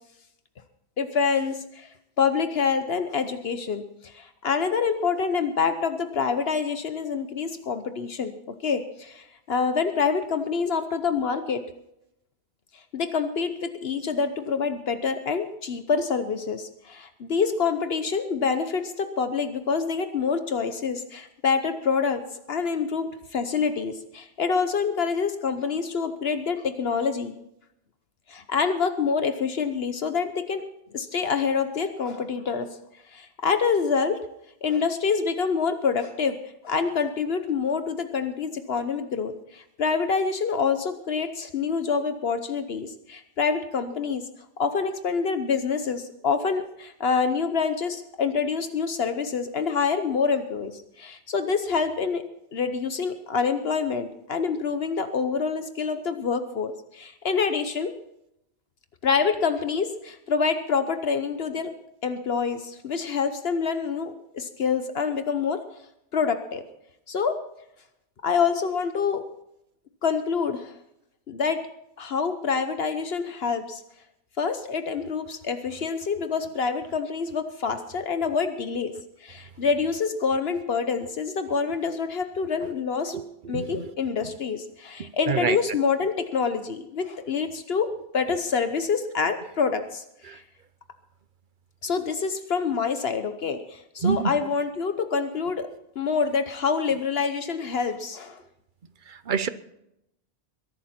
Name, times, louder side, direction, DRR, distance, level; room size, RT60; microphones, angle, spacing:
voice 1, 1.0-8.3 8.6-11.6 12.7-22.2 22.5-27.3 28.3-30.6 30.9-32.7 33.1-34.2 34.6-36.4 36.6-44.2 44.6-52.2 52.5-57.9 59.0-61.7 62.0-65.6 66.1-66.6 67.1-67.4 68.2-69.2 70.0-70.7 71.3-71.7 72.0-73.8 74.4-78.9 79.2-83.2 83.5-90.4 91.8-95.7 96.0-98.4, left 5 dB, 70° left, 9 dB, 1.2 m, -26 dB
voice 2, 83.1-83.9 85.3-85.6 90.3-90.4 94.0-94.3 99.1-99.5, right 6 dB, 55° right, 14 dB, 0.9 m, -27 dB
21.5 x 12.0 x 4.3 m, 0.80 s
omnidirectional pair, 1.1 m